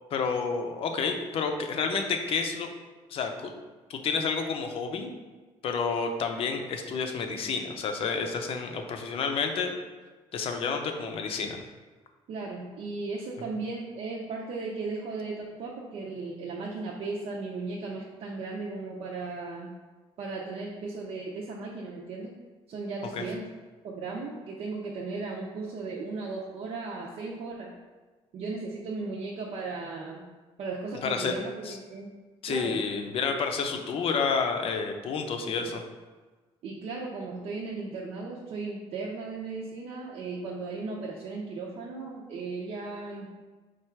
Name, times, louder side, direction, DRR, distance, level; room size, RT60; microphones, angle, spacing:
voice 1, 0.1-2.7 3.1-3.5 3.9-5.2 5.6-9.7 10.3-11.6 23.1-23.2 31.0-31.3 31.6-31.8 32.4-35.8, left 5 dB, 55° left, 5 dB, 0.6 m, -30 dB
voice 2, 12.3-19.7 20.2-22.3 22.7-23.4 23.8-27.7 28.3-30.2 30.6-32.1 32.5-32.8 35.4-35.7 36.6-43.3, right 3 dB, 60° right, -3 dB, 0.6 m, -36 dB
4.6 x 2.4 x 4.4 m, 1.3 s
cardioid pair, 125°, 12 cm